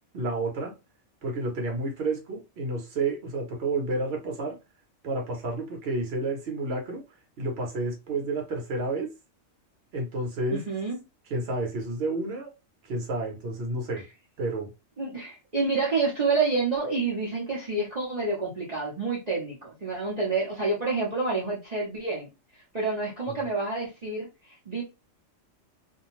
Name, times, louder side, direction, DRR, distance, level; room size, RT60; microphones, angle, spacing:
voice 1, 0.1-0.7 1.2-4.5 5.0-7.0 7.4-9.1 9.9-10.7 11.3-12.5 12.8-14.0 14.4-14.7 23.3-23.4, right 2 dB, 55° right, 1 dB, 1.1 m, -30 dB
voice 2, 10.5-11.0 15.0-22.3 22.7-24.3 24.7-24.8, right 3 dB, 35° right, -5 dB, 0.8 m, -28 dB
2.6 x 2.3 x 2.9 m, 0.27 s
omnidirectional pair, 1.4 m